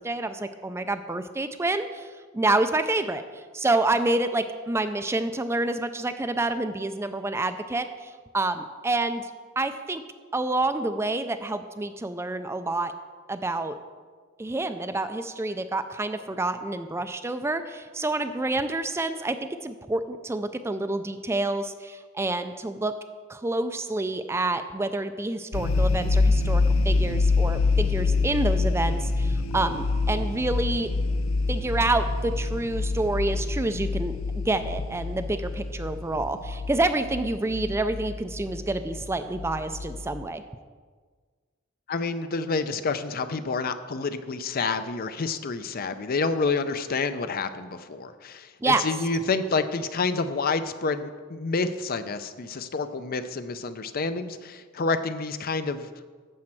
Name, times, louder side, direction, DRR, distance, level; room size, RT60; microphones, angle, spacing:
voice 1, 0.0-3.2 3.5-9.3 9.6-10.0 10.3-12.9 13.3-13.8 14.4-22.9 23.3-30.9 31.5-34.2 34.5-40.4 48.6-48.9, right 2 dB, 15° right, 9 dB, 0.4 m, -28 dB
sound 1, 25.5-40.2, left 3 dB, 90° left, 0.6 m, -26 dB
voice 2, 41.9-55.9, left 4 dB, 45° left, 11 dB, 0.5 m, -28 dB
12.0 x 4.3 x 7.6 m, 1.5 s
head